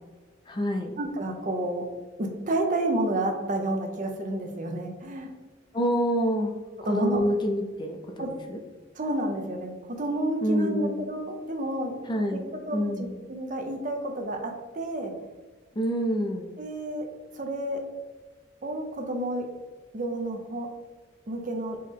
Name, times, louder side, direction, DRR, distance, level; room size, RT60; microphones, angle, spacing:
voice 1, 0.5-1.0 5.7-6.5 6.8-8.6 10.4-11.0 12.1-12.5 12.7-13.2 15.7-16.5, equal, 25° left, 3 dB, 0.4 m, -27 dB
voice 2, 1.0-1.9 2.2-5.3 6.8-7.2 8.2-8.3 9.0-12.0 12.3-12.8 13.3-15.2 16.6-17.1 17.3-17.8 18.6-19.5 19.9-20.7 21.3-21.8, right 1 dB, 40° right, 3 dB, 0.6 m, -30 dB
4.5 x 3.0 x 3.6 m, 1.3 s
head